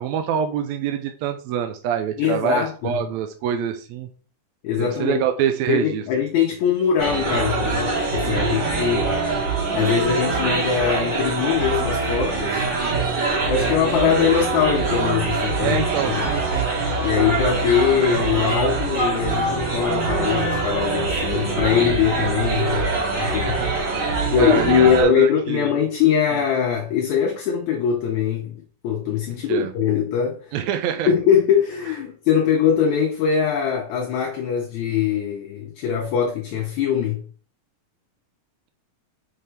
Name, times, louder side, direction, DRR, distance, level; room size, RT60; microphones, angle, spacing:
voice 1, 0.0-4.1 4.8-6.0 8.2-8.9 13.6-14.0 15.6-16.7 23.6-23.7 24.4-25.7 29.5-29.7 30.5-31.1, right 9 dB, 80° right, 1.7 m, -25 dB
voice 2, 2.2-3.0 4.6-5.2 5.7-9.2 9.5-12.7 13.5-16.3 17.0-23.6 24.3-28.6 28.8-30.5 31.1-37.2, left 8 dB, 70° left, 2.0 m, -22 dB
sound 1, 7.0-25.0, right 3 dB, 40° right, 2.4 m, -24 dB
5.6 x 5.4 x 3.3 m
omnidirectional pair, 3.7 m